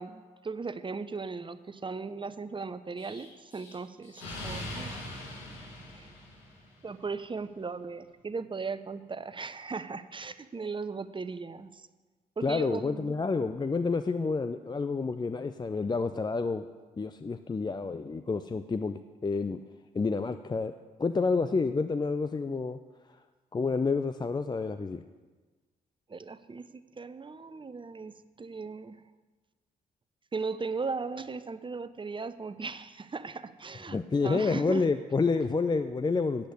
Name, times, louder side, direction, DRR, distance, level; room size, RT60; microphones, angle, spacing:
voice 1, 0.0-5.2 5.9-6.1 6.8-11.9 12.4-13.2 26.1-29.0 30.3-34.8, right 4 dB, 25° right, 12 dB, 0.7 m, -37 dB
Explosion, 3.0-6.8, left 1 dB, 80° left, 1.7 m, -41 dB
voice 2, 12.4-16.7 17.0-19.6 19.9-20.7 21.0-22.8 23.5-25.0 33.9-36.5, left 4 dB, 20° left, 10 dB, 0.5 m, -29 dB
8.6 x 8.1 x 7.9 m, 1.3 s
hypercardioid pair, 40°, 19 cm